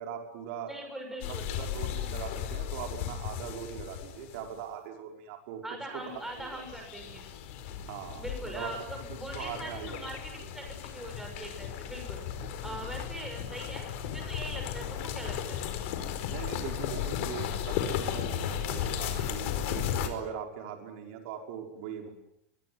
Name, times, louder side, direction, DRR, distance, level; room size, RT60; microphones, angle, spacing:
voice 1, 0.0-0.7 1.2-5.6 5.9-6.7 7.9-8.7 9.3-10.5 12.6-12.8 16.3-22.1, right 8 dB, 60° right, 3 dB, 5.4 m, -41 dB
voice 2, 0.7-1.5 5.6-7.3 8.2-12.2 12.6-15.6, right 1 dB, 5° right, 2 dB, 6.5 m, -41 dB
sound 1, 1.2-4.5 6.3-20.1, left 9 dB, 60° left, 4.6 m, -35 dB
23.5 x 22.5 x 9.6 m, 0.78 s
supercardioid pair, 160°, 8 cm